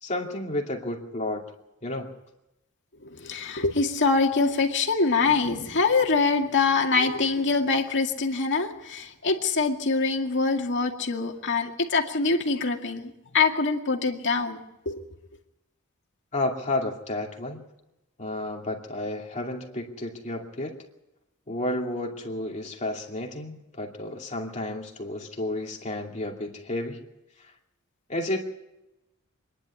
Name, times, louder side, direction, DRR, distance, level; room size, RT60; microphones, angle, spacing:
voice 1, 0.0-1.4 1.8-2.1 16.3-17.6 18.2-20.7 21.5-27.0 27.4-27.5 28.1-28.4, left 1 dB, 35° left, 0 dB, 2.6 m, -31 dB
voice 2, 3.2-15.0, left 4 dB, 55° left, 3 dB, 2.3 m, -24 dB
25.0 x 11.0 x 9.7 m, 0.92 s
head